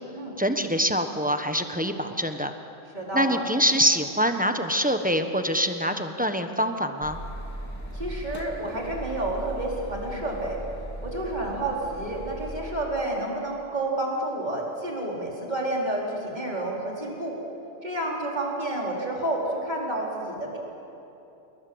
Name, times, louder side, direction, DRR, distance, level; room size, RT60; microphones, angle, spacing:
voice 1, 0.4-2.5 3.1-7.2, equal, 5° right, 6 dB, 1.1 m, -25 dB
voice 2, 2.9-3.4 7.9-10.6 11.0-17.4 17.8-20.6, right 1 dB, 35° right, -3 dB, 4.7 m, -30 dB
sound 1, 7.0-12.6, right 1 dB, 10° left, 2.4 m, -38 dB
28.5 x 21.0 x 8.0 m, 2.9 s
omnidirectional pair, 1.3 m